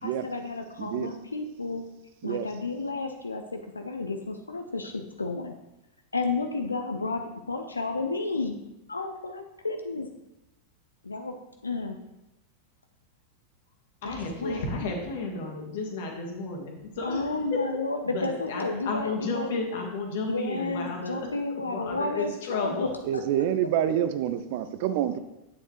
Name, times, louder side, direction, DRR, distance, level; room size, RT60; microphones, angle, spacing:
voice 1, 0.0-1.8 2.2-5.5 6.1-8.6 8.9-10.1 11.0-11.4 11.6-12.0 14.0-14.6 17.0-19.5 20.3-23.2, left 3 dB, 80° left, 5 dB, 0.5 m, -32 dB
voice 2, 0.8-1.1 2.2-2.5 23.1-25.2, right 10 dB, 50° right, 12 dB, 0.5 m, -27 dB
voice 3, 14.0-17.6 18.1-21.2 21.7-22.9, left 3 dB, 55° left, 0 dB, 1.7 m, -32 dB
8.4 x 7.2 x 3.2 m, 0.94 s
figure-of-eight pair, 90°, 0 cm